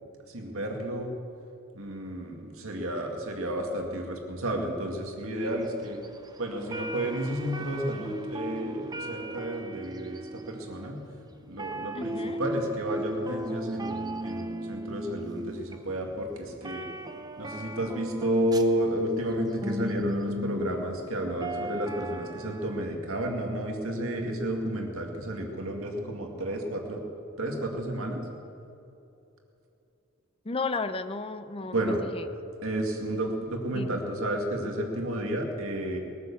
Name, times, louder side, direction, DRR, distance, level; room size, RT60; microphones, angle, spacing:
voice 1, 0.3-1.1 1.7-6.0 6.4-10.2 10.5-11.0 11.5-16.9 17.4-27.0 27.4-28.3 31.7-32.0 32.6-36.0, right 1 dB, 70° right, 2 dB, 2.1 m, -31 dB
sound 1, 5.4-22.9, right 1 dB, 20° right, 0.8 m, -37 dB
voice 2, 11.9-12.4 30.4-32.2 33.7-34.0, left 3 dB, 25° left, 10 dB, 0.7 m, -34 dB
20.0 x 9.5 x 7.2 m, 2.8 s
head